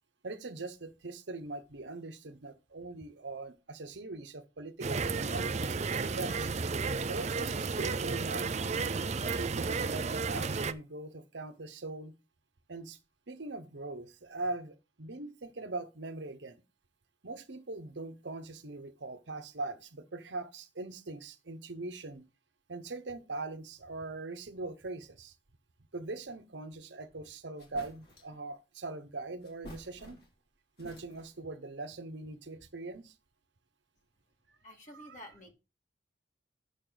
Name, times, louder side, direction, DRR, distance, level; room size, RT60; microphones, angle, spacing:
voice 1, 0.2-6.6 7.1-8.7 9.3-12.2 12.7-13.0 13.3-16.6 17.2-22.3 22.7-25.3 25.9-30.2 30.8-33.1 35.0-35.2, right 3 dB, 75° right, 1.1 m, -41 dB
sound 1, 4.8-10.7, right 4 dB, 40° right, 0.5 m, -33 dB
sound 2, 27.6-28.4 29.4-30.5 30.8-31.5, equal, 55° left, 2.8 m, -52 dB
voice 2, 34.6-35.5, left 1 dB, 40° left, 2.2 m, -50 dB
9.9 x 6.6 x 3.9 m
head